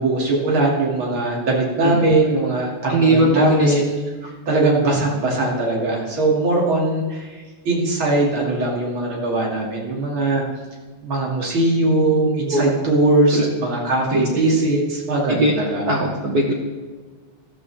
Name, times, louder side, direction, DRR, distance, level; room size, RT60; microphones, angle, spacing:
voice 1, 0.0-4.0 4.5-10.4 11.0-15.9, right 2 dB, 45° right, -2 dB, 3.1 m, -20 dB
voice 2, 1.8-2.2 2.9-3.7 12.5-12.7 13.3-13.5 14.1-14.3 15.3-15.6 15.9-16.5, right 1 dB, 90° right, 0 dB, 0.8 m, -19 dB
14.0 x 13.0 x 3.5 m, 1.4 s
omnidirectional pair, 3.3 m